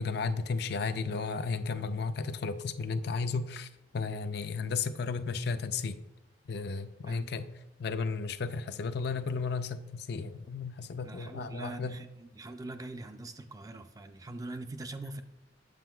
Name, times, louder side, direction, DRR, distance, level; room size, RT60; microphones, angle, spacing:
voice 1, 0.0-6.0 6.5-7.5 7.8-12.0, left 4 dB, 60° left, 10 dB, 0.4 m, -34 dB
voice 2, 11.0-15.2, right 2 dB, 20° right, 8 dB, 0.3 m, -43 dB
7.7 x 7.5 x 2.3 m, 0.95 s
head